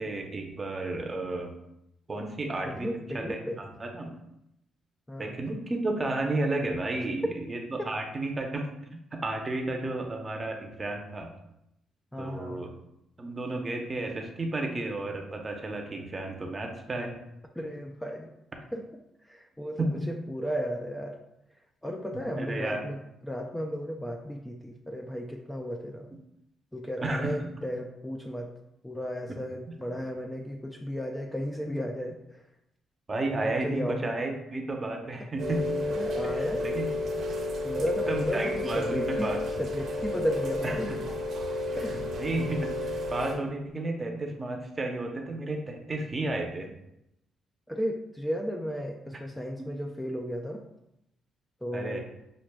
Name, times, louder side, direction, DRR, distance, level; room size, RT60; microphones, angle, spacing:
voice 1, 0.0-1.5 2.1-2.9 3.1-4.1 5.2-8.7 8.9-11.3 12.2-12.7 13.2-17.2 19.8-20.1 22.1-22.8 27.0-27.5 29.7-29.8 33.1-35.8 36.2-36.9 38.1-39.4 40.6-40.8 41.9-46.7 49.6-49.7 51.7-52.0, right 2 dB, 30° right, 2 dB, 0.6 m, -32 dB
voice 2, 2.7-3.6 5.1-5.3 7.8-7.9 12.1-12.6 17.6-18.3 18.7-18.8 19.2-21.2 21.8-23.0 23.2-26.1 26.7-28.5 28.8-32.4 33.4-34.2 35.9-36.7 37.6-39.3 39.6-40.9 41.7-41.9 47.7-50.6 51.6-52.0, equal, 10° left, 2 dB, 0.3 m, -34 dB
Rain, 35.4-43.3, left 1 dB, 60° right, 0.7 m, -31 dB
5.9 x 2.4 x 2.2 m, 0.84 s
cardioid pair, 90°, 0 cm